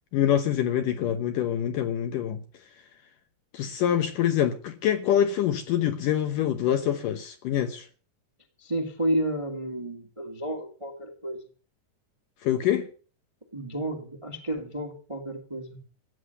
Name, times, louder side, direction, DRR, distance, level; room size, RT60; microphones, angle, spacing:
voice 1, 0.1-2.4 3.5-7.9 12.4-12.9, left 10 dB, 70° left, 2.2 m, -25 dB
voice 2, 8.6-11.4 13.5-15.8, right 1 dB, 15° right, 1.1 m, -31 dB
16.0 x 9.8 x 6.6 m
omnidirectional pair, 4.8 m